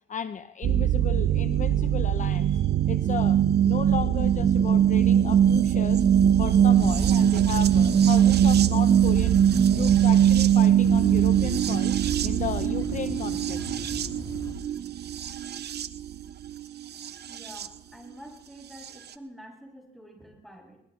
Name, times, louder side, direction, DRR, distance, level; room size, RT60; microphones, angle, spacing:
voice 1, 0.1-6.1 6.4-9.4 9.7-13.6, left 8 dB, 40° left, 11 dB, 0.7 m, -35 dB
sound 1, 0.6-17.7 18.8-18.9, right 9 dB, 55° right, 0.9 m, -22 dB
sound 2, 6.6-14.5, left 2 dB, 20° left, 3.7 m, -40 dB
voice 2, 17.3-20.8, equal, ahead, 0 dB, 6.8 m, -47 dB
23.0 x 19.0 x 3.2 m, 0.81 s
cardioid pair, 90°, 20 cm